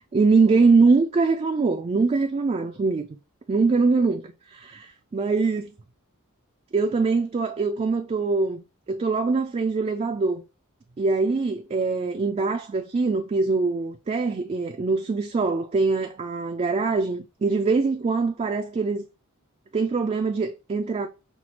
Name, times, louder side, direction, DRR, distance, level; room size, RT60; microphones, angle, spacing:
voice 1, 0.0-3.1 3.5-5.7 6.7-10.4 11.0-19.0 19.7-21.1, right 4 dB, 30° right, 0.3 m, -23 dB
5.8 x 2.3 x 2.8 m
head